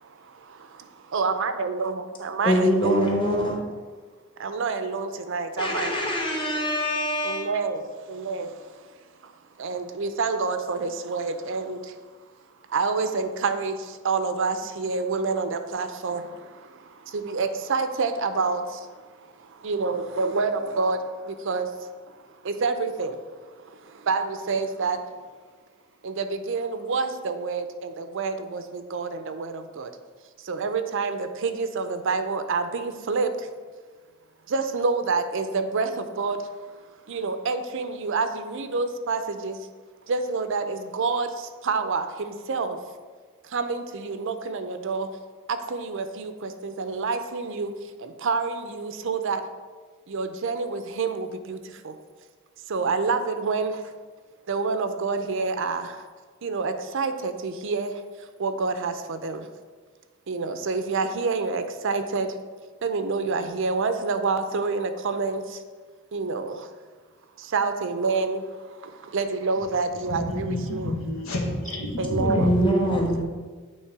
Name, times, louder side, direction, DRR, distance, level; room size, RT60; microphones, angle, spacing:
voice 1, 1.1-3.2 4.4-5.9 7.2-7.8 8.1-8.5 9.6-11.8 12.7-13.8 14.0-16.3 17.1-18.8 19.6-21.0 21.2-21.7 22.4-23.2 24.1-25.0 26.0-29.9 30.5-33.3 34.5-36.4 37.1-39.6 40.1-42.8 43.5-45.1 45.7-47.7 48.0-49.4 50.1-51.6 51.8-51.9 52.7-53.8 54.5-56.0 56.4-57.9 58.4-59.5 60.3-62.3 62.8-65.6 66.1-66.6 67.5-68.4 68.8-70.9 72.0-72.5, right 4 dB, 65° right, 9 dB, 0.5 m, -27 dB
voice 2, 2.4-3.5 5.6-7.5 72.1-73.2, equal, 25° left, -1 dB, 1.2 m, -23 dB
voice 3, 70.0-72.5 72.9-73.2, left 1 dB, 85° left, -1 dB, 1.3 m, -30 dB
8.5 x 3.2 x 4.7 m, 1.4 s
head